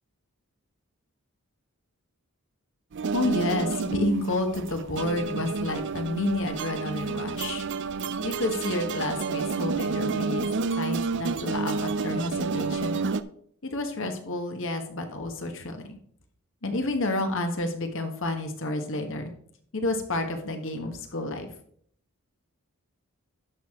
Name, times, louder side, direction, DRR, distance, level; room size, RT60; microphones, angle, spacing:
sound 1, 2.9-13.2, right 4 dB, 55° right, 0.5 m, -30 dB
voice 1, 3.1-7.6 8.2-13.0 13.6-16.0 16.6-19.3 19.7-21.5, left 2 dB, 60° left, 5 dB, 1.4 m, -30 dB
11.5 x 6.2 x 3.7 m, 0.62 s
head